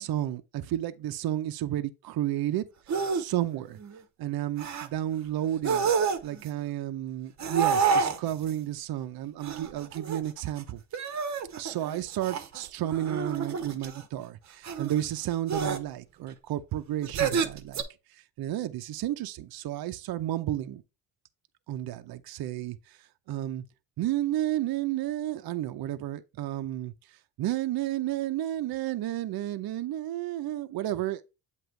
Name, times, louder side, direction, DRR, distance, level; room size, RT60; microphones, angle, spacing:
voice 1, 0.0-2.7 3.1-3.8 4.2-5.9 6.2-10.8 11.6-17.8 18.4-20.8 21.7-22.8 23.3-23.6 24.0-26.9 27.4-31.2, right 13 dB, 55° right, 0.6 m, -32 dB
sound 1, 2.9-3.2 3.6-4.0 4.6-4.9 5.5-6.5 7.4-8.5 9.4-10.6 10.9-14.0 14.6-15.0 15.5-15.8 17.0-17.8, right 6 dB, 40° right, 0.9 m, -29 dB
7.8 x 3.0 x 4.4 m
cardioid pair, 105°, 44 cm